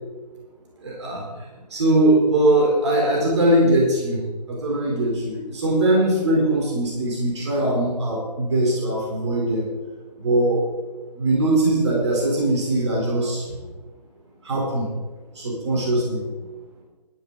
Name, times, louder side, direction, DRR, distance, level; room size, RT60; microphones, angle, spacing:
voice 1, 0.8-1.2 1.7-9.7 10.2-10.6 11.2-13.6 14.4-14.9 15.4-16.2, right 1 dB, 45° right, -2 dB, 4.2 m, -21 dB
15.5 x 13.0 x 4.1 m, 1.2 s
figure-of-eight pair, 150°, 21 cm